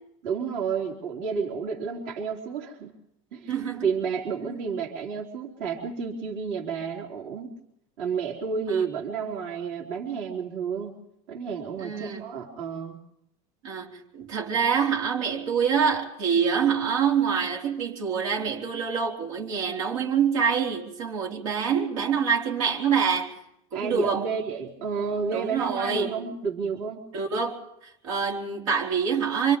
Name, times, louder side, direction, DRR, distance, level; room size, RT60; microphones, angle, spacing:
voice 1, 0.2-2.9 3.3-7.5 8.0-10.9 11.3-13.0 23.7-27.1, right 5 dB, 55° right, 3.4 m, -31 dB
voice 2, 3.5-3.8 11.8-12.2 13.6-23.3 23.7-24.3 25.3-26.1 27.1-27.6 28.0-29.6, right 6 dB, 75° right, 4.0 m, -26 dB
28.0 x 26.0 x 3.7 m
supercardioid pair, 175°, 17 cm